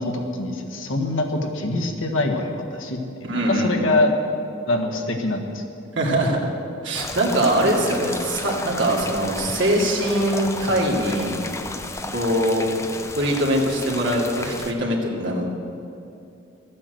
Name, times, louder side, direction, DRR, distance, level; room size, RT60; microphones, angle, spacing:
voice 1, 0.0-4.1 4.7-5.6, left 2 dB, 85° left, 3 dB, 1.6 m, -24 dB
voice 2, 3.2-3.8 6.0-6.5 6.8-11.4 12.1-12.7 13.2-15.5, right 1 dB, 70° right, -2 dB, 2.5 m, -22 dB
sound 1, 6.9-14.7, left 2 dB, 15° left, 0.5 m, -33 dB
13.5 x 9.6 x 7.8 m, 2.8 s
head